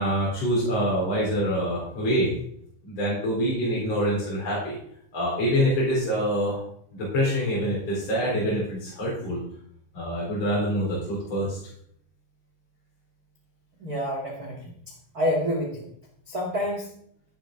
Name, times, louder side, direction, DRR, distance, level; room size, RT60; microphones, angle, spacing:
voice 1, 0.0-2.3 2.8-4.8 5.1-6.6 6.9-9.4 9.9-11.6, equal, 35° left, -6 dB, 4.5 m, -25 dB
voice 2, 13.8-14.6 15.1-15.9 16.3-16.9, equal, 45° right, -2 dB, 1.1 m, -27 dB
15.5 x 9.0 x 3.8 m, 0.68 s
omnidirectional pair, 5.7 m